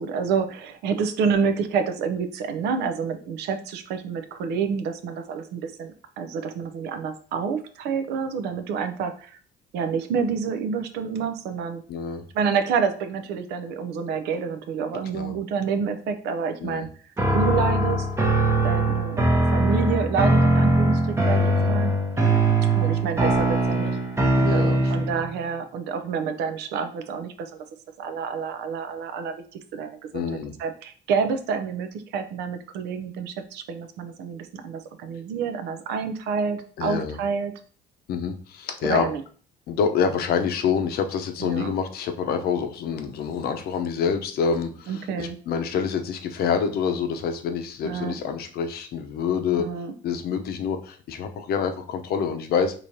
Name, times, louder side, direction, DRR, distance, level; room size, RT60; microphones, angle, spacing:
voice 1, 0.0-9.4 9.7-11.8 12.3-16.9 17.3-18.1 18.6-21.9 22.7-24.0 24.5-27.6 28.0-29.4 29.7-30.2 30.6-37.5 38.8-39.2 41.4-41.7 44.9-45.4 47.8-48.1 49.6-49.9, right 6 dB, 80° right, 8 dB, 0.6 m, -28 dB
voice 2, 11.9-12.3 15.1-15.3 16.6-16.9 21.3-21.7 24.4-25.2 30.1-30.5 36.8-37.2 38.1-39.1 39.7-49.7 50.0-52.7, left 6 dB, 65° left, 6 dB, 0.7 m, -27 dB
sound 1, 17.2-25.2, right 2 dB, 15° right, 0.8 m, -21 dB
4.9 x 3.0 x 2.7 m, 0.43 s
cardioid pair, 110°, 17 cm